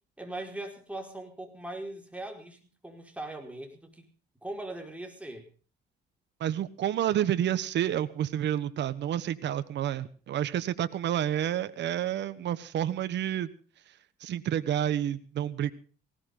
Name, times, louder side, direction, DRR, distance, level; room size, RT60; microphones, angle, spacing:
voice 1, 0.2-4.1 4.4-5.5, right 1 dB, 5° right, 3 dB, 5.0 m, -40 dB
voice 2, 6.4-13.5 14.2-15.7, right 11 dB, 70° right, 12 dB, 1.2 m, -29 dB
19.0 x 17.0 x 3.9 m, 0.39 s
cardioid pair, 100°, 19 cm